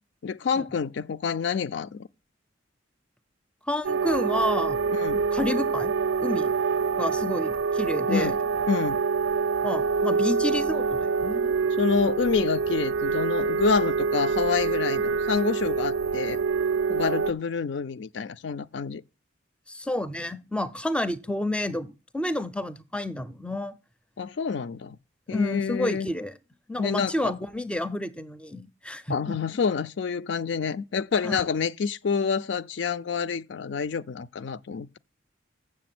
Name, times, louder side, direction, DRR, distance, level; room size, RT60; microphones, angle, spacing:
voice 1, 0.2-2.1 4.9-5.2 8.1-8.4 8.7-9.0 11.8-16.4 16.9-19.0 24.2-25.0 25.3-26.1 26.8-27.1 29.1-35.0, left 5 dB, 65° left, 0.4 m, -27 dB
voice 2, 3.7-4.9 5.3-5.9 6.2-6.5 7.0-8.3 9.6-11.6 19.7-23.8 25.3-26.4 26.7-29.4 31.2-31.4, left 1 dB, 5° left, 0.4 m, -30 dB
sound 1, 3.8-17.3, right 5 dB, 65° right, 0.4 m, -26 dB
7.5 x 6.9 x 5.9 m
head